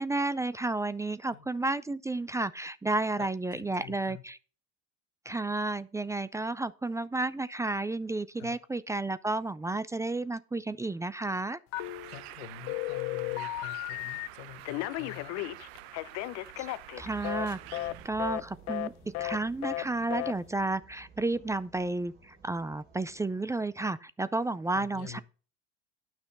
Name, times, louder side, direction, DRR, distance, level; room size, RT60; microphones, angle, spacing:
voice 1, 0.0-4.4 5.3-11.6 16.6-16.7 17.0-17.6 18.0-18.9 19.2-25.2, right 2 dB, 10° right, 0.4 m, -32 dB
voice 2, 3.2-4.2 8.4-8.6 12.0-15.3 24.7-25.2, left 13 dB, 80° left, 1.0 m, -47 dB
Telephone, 11.7-12.3 12.7-14.3 14.6-17.5 17.7-17.9 18.2-18.4 18.7-18.9 19.1-19.4 19.6-19.8 20.1-20.3, left 16 dB, 55° left, 0.7 m, -34 dB
Bird, 11.8-18.1, right 16 dB, 75° right, 0.7 m, -47 dB
sound 1, 17.0-23.3, right 4 dB, 30° right, 3.2 m, -54 dB
9.7 x 6.1 x 5.4 m
supercardioid pair, 95°, 32 cm